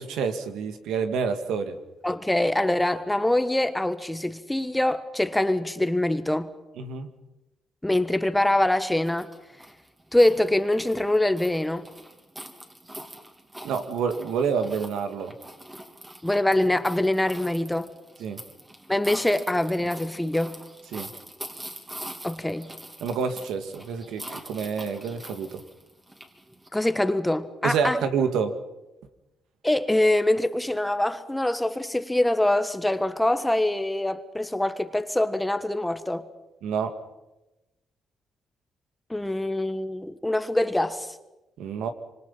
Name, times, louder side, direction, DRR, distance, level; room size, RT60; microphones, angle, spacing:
voice 1, 0.0-1.8 6.8-7.1 13.6-15.3 18.2-18.4 20.9-21.1 23.0-25.6 27.6-28.5 36.6-37.0 41.6-41.9, right 6 dB, 85° right, 2.1 m, -28 dB
voice 2, 2.0-6.5 7.8-9.3 10.1-11.9 16.2-17.9 18.9-20.6 22.2-22.7 26.7-28.0 29.6-36.3 39.1-41.2, left 1 dB, 10° left, 1.3 m, -24 dB
sound 1, 9.0-26.7, right 1 dB, 15° right, 3.1 m, -44 dB
26.0 x 25.0 x 5.7 m
cardioid pair, 90°, 0 cm